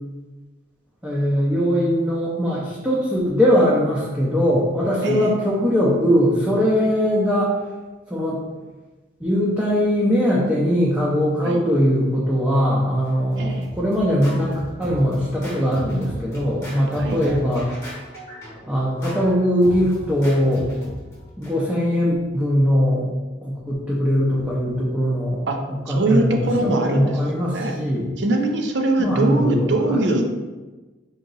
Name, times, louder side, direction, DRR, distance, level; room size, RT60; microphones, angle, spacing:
voice 1, 1.0-7.5 8.1-8.4 9.2-17.7 18.7-20.7 21.4-23.1 23.4-25.5 25.9-26.3 26.6-28.1 29.0-30.0, equal, 5° right, -7 dB, 0.6 m, -20 dB
voice 2, 5.0-5.3 6.8-6.9 11.4-11.6 13.4-13.7 17.0-17.2 25.5-25.6 25.9-27.2 27.5-27.8 28.2-30.3, right 2 dB, 60° right, 3 dB, 0.5 m, -22 dB
Scratching (performance technique), 13.1-21.5, equal, 15° left, 0.9 m, -37 dB
3.9 x 2.9 x 3.9 m, 1.2 s
head